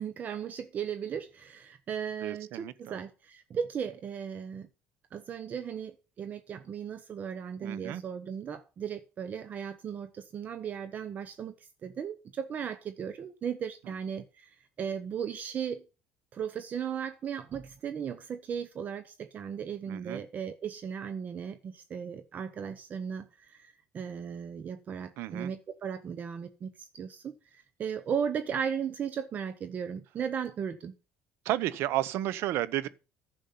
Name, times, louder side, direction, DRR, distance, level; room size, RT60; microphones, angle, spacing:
voice 1, 0.0-4.7 5.1-15.8 16.3-30.9, right 7 dB, 40° right, 0.9 m, -36 dB
voice 2, 2.2-3.0 7.6-8.0 19.9-20.2 25.2-25.5 31.4-32.9, right 14 dB, 70° right, 0.9 m, -32 dB
10.5 x 7.1 x 5.7 m
cardioid pair, 125°, 4 cm